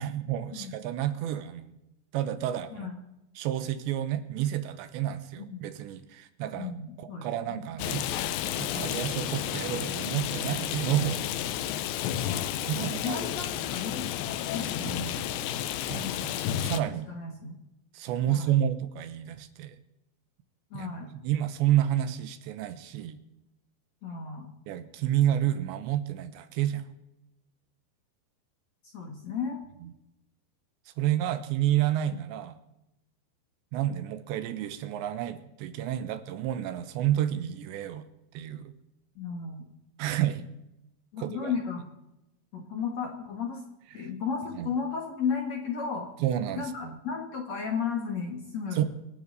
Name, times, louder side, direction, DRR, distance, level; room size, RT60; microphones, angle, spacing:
voice 1, 0.0-1.7 2.1-2.9 3.4-6.7 7.0-8.1 8.6-11.2 12.6-13.2 14.8-15.3 15.9-16.3 16.6-17.1 17.9-19.8 20.7-23.2 24.7-26.8 31.0-32.6 33.7-38.1 38.3-38.7 40.0-40.5 41.2-41.5 44.0-44.1 44.6-44.7 46.2-47.0 48.7-48.8, right 12 dB, 80° right, 11 dB, 3.2 m, -30 dB
voice 2, 6.6-7.2 7.5-7.7 8.6-8.9 12.8-14.1 14.4-14.7 15.9-16.2 16.7-17.5 18.3-18.5 20.7-21.1 24.0-24.5 28.9-29.6 32.1-32.2 39.2-39.7 41.1-41.9 42.5-43.6 43.9-46.1 46.6-48.8, left 6 dB, 50° left, 2 dB, 2.3 m, -34 dB
Rain, 7.8-16.8, left 11 dB, 80° left, 3.0 m, -31 dB
27.0 x 10.5 x 4.1 m, 0.91 s
omnidirectional pair, 5.3 m